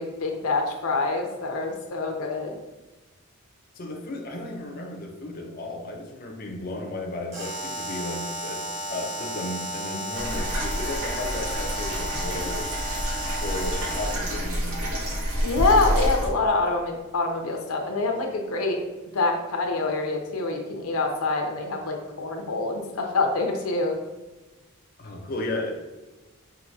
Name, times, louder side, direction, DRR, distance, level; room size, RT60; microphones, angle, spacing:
voice 1, 0.0-2.6 12.3-12.6 15.4-18.8 19.1-24.0, left 3 dB, 90° left, 3 dB, 0.7 m, -26 dB
voice 2, 3.7-12.6 13.4-15.2 25.0-25.7, left 2 dB, 40° left, 0 dB, 0.5 m, -34 dB
Alarm, 7.3-14.3, equal, 35° right, 1.0 m, -33 dB
sound 1, 10.1-16.3, equal, 70° right, 0.9 m, -28 dB
5.8 x 2.7 x 2.6 m, 1.2 s
head